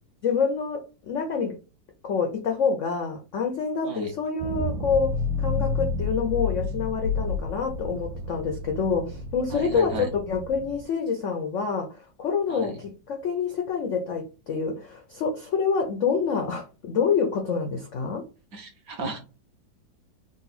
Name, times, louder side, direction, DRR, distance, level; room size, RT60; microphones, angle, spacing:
voice 1, 0.2-1.6 2.0-18.2, left 5 dB, 75° left, 3 dB, 0.7 m, -27 dB
sound 1, 4.4-10.8, left 3 dB, 85° right, 1.3 m, -30 dB
voice 2, 9.5-10.1 12.5-12.7 18.5-19.2, right 2 dB, 55° right, 2 dB, 1.3 m, -34 dB
3.8 x 2.4 x 4.1 m, 0.34 s
omnidirectional pair, 2.0 m